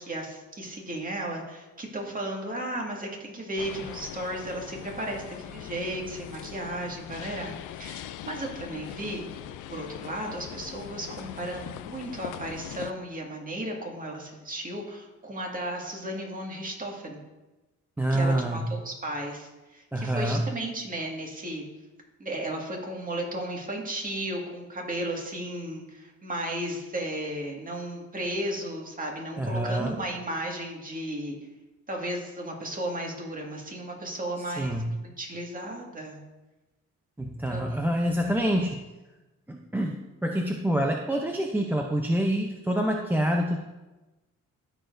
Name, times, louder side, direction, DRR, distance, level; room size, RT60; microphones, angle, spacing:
voice 1, 0.0-17.2 18.1-21.6 22.2-31.4 31.9-36.2 37.5-37.9, right 1 dB, 30° right, 0 dB, 1.9 m, -34 dB
sound 1, 3.6-12.9, left 12 dB, 85° left, 0.5 m, -41 dB
voice 2, 18.0-18.6 19.9-20.4 29.4-30.0 34.6-34.9 37.2-38.9 39.5-40.0 40.2-43.6, right 1 dB, 5° right, 1 dB, 0.6 m, -26 dB
14.0 x 4.9 x 2.6 m, 1.1 s
cardioid pair, 90°, 30 cm